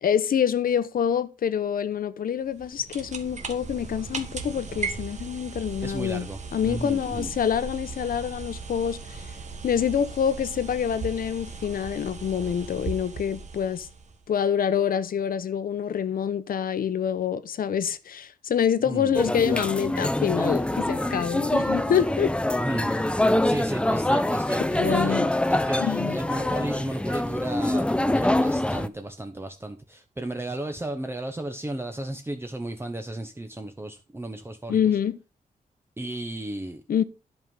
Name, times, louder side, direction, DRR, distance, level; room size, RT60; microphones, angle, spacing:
voice 1, 0.0-9.0 9.6-13.9 14.3-22.3 24.7-25.3 25.8-26.2 34.7-35.2 36.9-37.0, left 8 dB, 80° left, 0.9 m, -26 dB
sound 1, 2.5-14.3, right 5 dB, 55° right, 1.6 m, -37 dB
voice 2, 5.8-7.3 18.8-19.2 22.6-35.0 36.0-36.8, right 1 dB, 15° right, 1.0 m, -34 dB
sound 2, 19.2-28.9, left 1 dB, 5° left, 0.6 m, -25 dB
10.5 x 5.4 x 5.5 m
wide cardioid pair, 120°, 15 cm